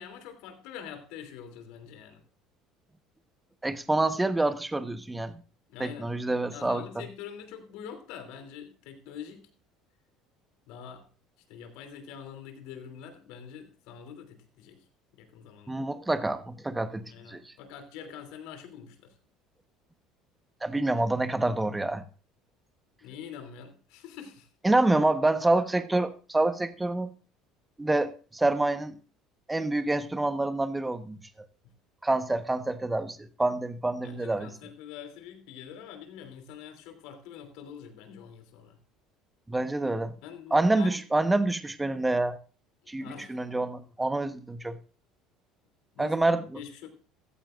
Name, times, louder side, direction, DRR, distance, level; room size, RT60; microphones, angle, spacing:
voice 1, 0.0-2.2 5.7-6.1 6.5-9.5 10.7-11.0 11.5-14.8 15.1-15.8 17.1-19.1 23.0-24.5 31.6-31.7 34.0-38.8 40.2-41.0 43.0-43.4 45.9-46.2 46.5-46.9, left 8 dB, 75° left, 3.0 m, -45 dB
voice 2, 3.6-5.4 5.8-7.0 15.7-17.5 20.6-22.0 24.6-27.1 27.8-28.9 29.5-31.2 32.0-34.5 39.5-40.1 40.5-42.4 42.9-44.8 46.0-46.4, right 2 dB, 10° right, 1.2 m, -27 dB
15.5 x 14.0 x 2.5 m
supercardioid pair, 85°, 0 cm